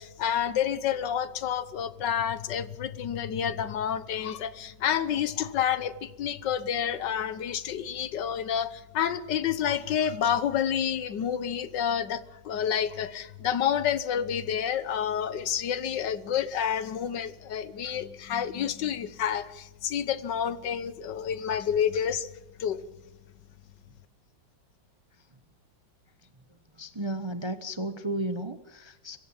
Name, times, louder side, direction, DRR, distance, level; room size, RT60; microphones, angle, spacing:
voice 1, 0.0-22.3 22.6-22.8, left 9 dB, 70° left, 15 dB, 1.6 m, -29 dB
voice 2, 26.7-29.2, right 1 dB, 25° right, 10 dB, 0.7 m, -34 dB
25.0 x 15.5 x 7.2 m, 1.0 s
omnidirectional pair, 2.0 m